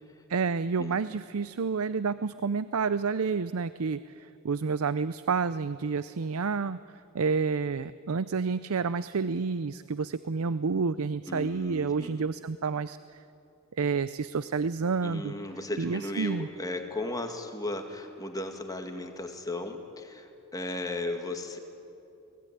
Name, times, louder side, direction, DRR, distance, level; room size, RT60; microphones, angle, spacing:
voice 1, 0.3-6.8 7.1-13.0 13.8-15.3 15.8-16.5, right 5 dB, 70° right, 15 dB, 0.5 m, -29 dB
voice 2, 11.3-12.2 15.0-21.6, left 2 dB, 15° left, 5 dB, 2.0 m, -36 dB
29.0 x 19.5 x 10.0 m, 2.7 s
head